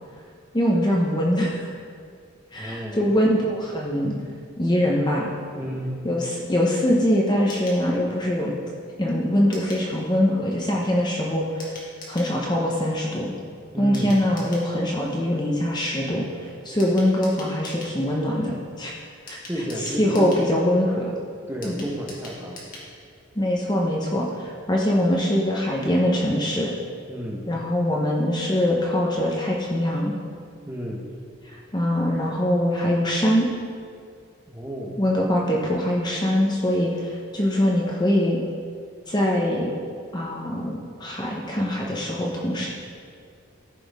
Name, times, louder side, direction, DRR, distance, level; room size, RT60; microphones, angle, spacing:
voice 1, 0.5-1.7 2.5-4.2 4.6-5.3 6.0-8.5 9.0-11.8 12.1-13.3 13.8-18.9 19.3-19.4 20.0-21.1 21.6-21.9 23.4-26.7 27.5-30.1 31.7-33.5 35.0-38.4 39.1-39.7 40.1-42.7, equal, 20° left, -2 dB, 0.9 m, -23 dB
voice 2, 2.5-3.0 5.5-5.9 13.7-14.2 19.5-20.4 21.5-22.7 27.1-27.4 30.7-31.0 34.5-34.9, equal, 10° right, -2 dB, 1.1 m, -31 dB
sound 1, 7.5-7.8 9.5-9.9 11.6-12.3 13.9-14.7 16.8-18.0 19.3-20.5 21.6-22.9 23.2-23.3 23.5-23.6, left 1 dB, 40° left, 2.0 m, -42 dB
14.0 x 6.2 x 3.6 m, 2.2 s
head